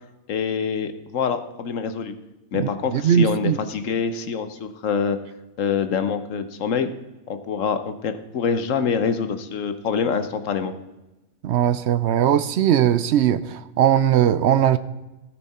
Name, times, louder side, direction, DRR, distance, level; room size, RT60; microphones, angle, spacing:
voice 1, 0.3-2.1 2.5-5.2 5.6-6.9 7.3-10.7, left 6 dB, 65° left, 9 dB, 1.2 m, -25 dB
voice 2, 2.6-3.6 11.4-14.8, right 10 dB, 65° right, 14 dB, 0.7 m, -19 dB
15.0 x 9.2 x 4.3 m, 1.0 s
omnidirectional pair, 1.5 m